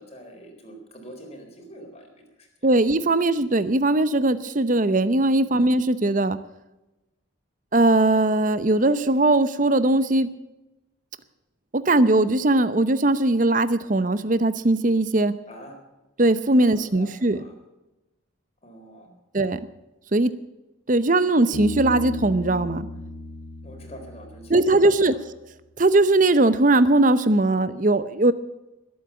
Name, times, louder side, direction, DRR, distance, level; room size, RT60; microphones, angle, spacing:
voice 1, 0.0-2.7 15.5-15.8 16.5-17.5 18.6-19.2 23.6-25.2, equal, 30° left, 3 dB, 3.9 m, -45 dB
voice 2, 2.6-6.4 7.7-10.3 11.7-15.3 16.2-17.4 19.3-19.6 20.1-20.3 20.9-22.9 24.5-25.1 25.8-28.3, right 2 dB, 40° right, 14 dB, 0.8 m, -20 dB
Bass guitar, 21.5-25.0, left 2 dB, 60° left, 1.5 m, -35 dB
20.5 x 8.7 x 7.0 m, 1.0 s
head